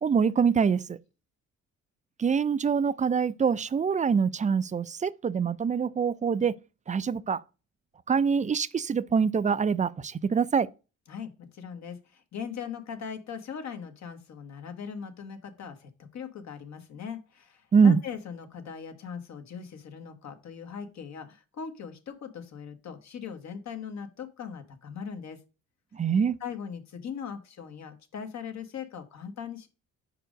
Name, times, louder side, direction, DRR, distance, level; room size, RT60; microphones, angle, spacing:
voice 1, 0.0-1.0 2.2-6.6 6.9-7.4 8.1-10.7 17.7-18.0 25.9-26.4, right 6 dB, 25° right, 0.4 m, -24 dB
voice 2, 11.1-25.4 26.4-29.7, left 7 dB, 65° left, 1.3 m, -40 dB
5.0 x 4.6 x 5.1 m
cardioid pair, 90°, 30 cm